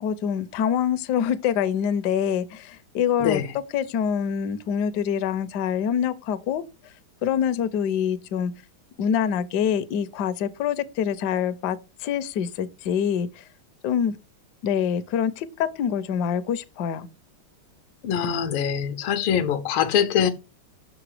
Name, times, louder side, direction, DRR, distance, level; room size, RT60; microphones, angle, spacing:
voice 1, 0.0-3.4 3.7-6.6 7.2-8.5 9.0-13.4 13.8-14.2 14.6-17.1, left 8 dB, 70° left, 1.0 m, -25 dB
voice 2, 3.2-3.5 18.0-20.3, left 8 dB, 85° left, 1.5 m, -23 dB
6.3 x 3.9 x 4.7 m
omnidirectional pair, 2.3 m